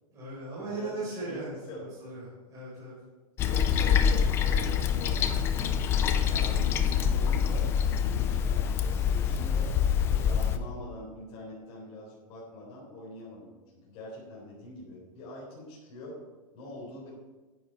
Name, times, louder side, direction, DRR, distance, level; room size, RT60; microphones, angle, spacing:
voice 1, 0.1-2.2 2.5-2.9, right 2 dB, 15° right, -8 dB, 4.2 m, -38 dB
voice 2, 0.7-1.9 3.4-9.7 10.1-16.2 16.5-17.1, left 1 dB, 30° left, -6 dB, 4.0 m, -44 dB
Toilet flush, 3.4-10.6, left 8 dB, 15° left, 0.3 m, -26 dB
10.0 x 9.7 x 4.5 m, 1.2 s
supercardioid pair, 165°, 19 cm